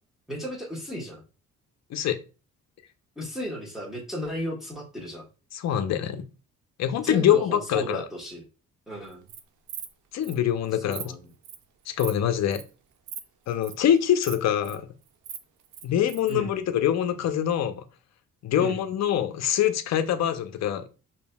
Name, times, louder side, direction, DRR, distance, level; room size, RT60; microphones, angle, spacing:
voice 1, 0.3-1.2 3.2-5.3 6.9-8.4 8.9-9.3 10.9-11.2 16.3-16.5 18.6-18.8, equal, ahead, 1.4 m, -34 dB
voice 2, 5.5-6.3 6.8-8.0 10.1-11.0 11.9-12.6 13.5-14.9 15.8-17.8 18.4-20.9, left 10 dB, 60° left, 0.6 m, -24 dB
Insect, 9.1-9.4 9.7-9.9 10.2-10.3 10.7-11.0 11.4-11.6 12.0-12.2 12.5-12.7 13.1-13.2 13.5-13.7 14.2-14.7 15.1-16.3, right 9 dB, 85° right, 0.6 m, -39 dB
5.1 x 2.8 x 2.2 m
cardioid pair, 90°, 30 cm